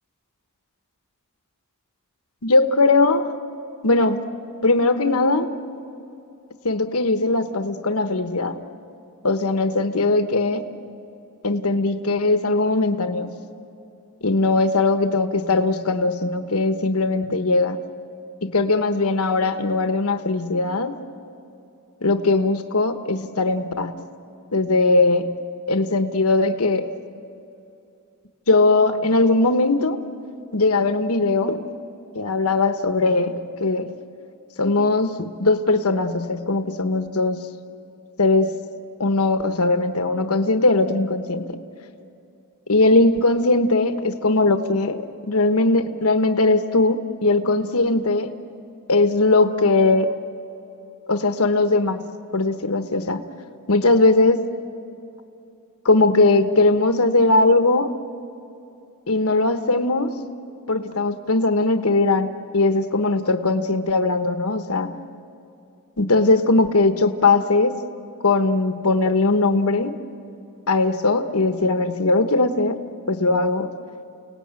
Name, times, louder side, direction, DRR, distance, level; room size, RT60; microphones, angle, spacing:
voice 1, 2.4-3.3 3.8-4.2 4.6-5.5 6.6-8.6 9.2-10.6 11.4-13.3 14.2-17.8 18.4-20.9 22.0-23.9 24.5-25.3 25.7-26.9 28.5-30.0 30.5-31.6 32.1-33.9 34.6-37.5 38.2-38.5 39.0-41.6 42.7-48.3 48.9-50.1 51.1-52.0 52.3-53.2 53.7-54.4 55.8-57.9 59.1-60.1 60.7-62.3 62.5-64.9 66.0-67.8 68.2-70.0 70.7-72.8 73.1-73.7, left 3 dB, 70° left, 8 dB, 1.2 m, -19 dB
29.5 x 18.5 x 8.9 m, 2.8 s
head